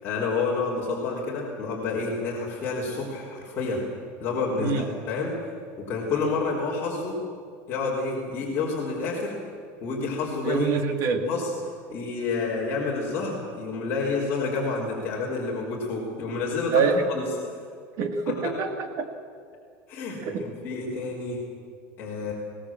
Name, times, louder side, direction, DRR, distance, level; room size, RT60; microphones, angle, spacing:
voice 1, 0.0-3.8 4.2-5.3 5.8-7.2 7.7-9.3 9.8-10.7 11.2-11.5 11.9-17.3 18.3-18.4 19.9-21.4 22.0-22.3, left 4 dB, 30° left, -6 dB, 3.9 m, -29 dB
voice 2, 10.4-11.3 16.7-17.1 18.0-19.1 20.2-20.5, right 4 dB, 45° right, 6 dB, 2.1 m, -25 dB
22.0 x 18.5 x 7.5 m, 2.2 s
supercardioid pair, 160°, 7 cm